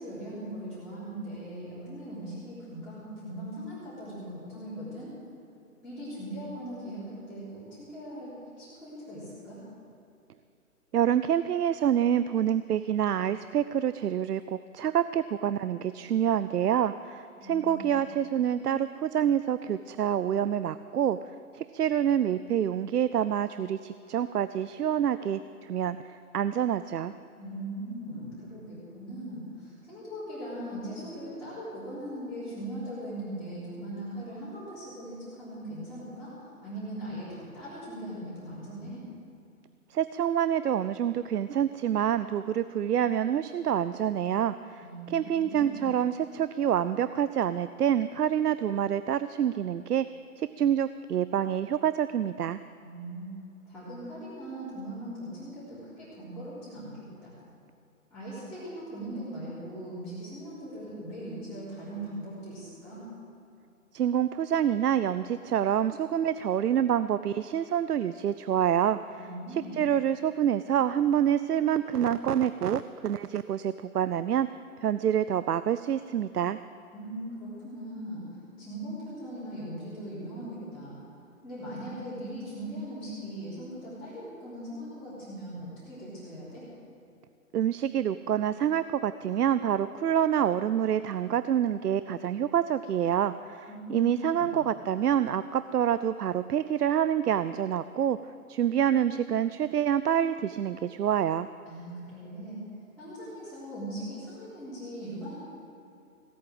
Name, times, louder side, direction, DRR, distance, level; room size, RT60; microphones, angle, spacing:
voice 1, 0.0-5.1 5.8-9.6 17.4-18.0 27.3-39.0 44.8-45.8 52.8-53.3 53.7-57.4 58.1-63.0 69.2-69.9 76.9-78.2 78.6-81.0 81.4-86.6 93.7-94.6 101.7-102.6 103.0-105.3, right 1 dB, ahead, -15 dB, 3.6 m, -40 dB
voice 2, 10.9-21.2 21.5-27.1 39.9-50.0 50.4-52.6 63.9-69.2 69.5-74.5 74.8-76.6 87.5-98.2 98.5-101.5, right 9 dB, 85° right, 14 dB, 0.6 m, -27 dB
17.0 x 8.6 x 7.8 m, 2.6 s
hypercardioid pair, 155°, 46 cm